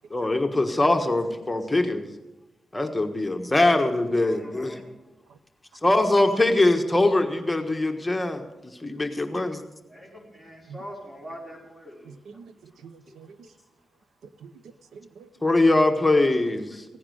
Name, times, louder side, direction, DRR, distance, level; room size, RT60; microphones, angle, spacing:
voice 1, 0.1-2.1 2.7-4.8 5.8-8.4 8.8-9.6 15.4-16.8, left 2 dB, 15° left, 5 dB, 1.4 m, -22 dB
voice 2, 4.2-4.8 9.9-12.1, equal, 20° right, -2 dB, 4.9 m, -43 dB
voice 3, 12.0-13.4 14.4-14.5 14.9-15.3, right 6 dB, 90° right, 13 dB, 0.8 m, -46 dB
16.0 x 9.9 x 6.4 m, 1.1 s
cardioid pair, 70°, 0 cm